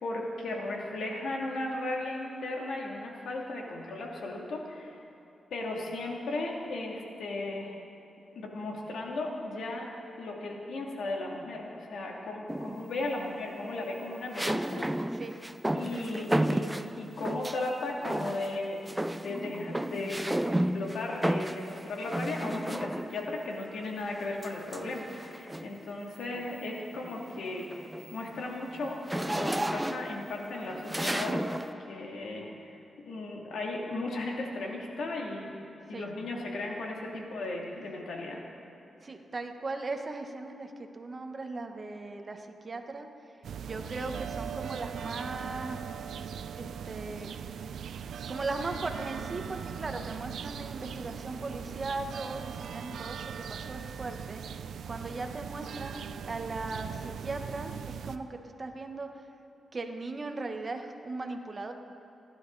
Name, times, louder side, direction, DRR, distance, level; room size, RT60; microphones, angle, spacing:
voice 1, 0.0-5.0 5.5-7.7 8.3-9.8 10.2-15.1 15.7-16.7 17.0-18.8 19.1-20.2 20.5-31.6 31.9-35.5 35.9-38.4, left 2 dB, 80° left, -1 dB, 2.8 m, -36 dB
sound 1, 12.5-13.0 14.3-17.7 18.0-18.6 18.9-23.3 24.4-25.8 26.3-26.6 26.9-31.7, right 1 dB, 10° right, 0.5 m, -33 dB
voice 2, 14.8-15.4 35.9-36.1 37.1-37.2 39.0-43.1 43.6-45.8 46.6-47.7 48.3-54.6 54.9-59.2 59.7-61.7, right 3 dB, 35° right, 5 dB, 1.3 m, -38 dB
sound 2, 43.4-58.2, right 7 dB, 85° right, 0.6 m, -39 dB
29.5 x 12.0 x 4.1 m, 2.9 s
wide cardioid pair, 110°, 0 cm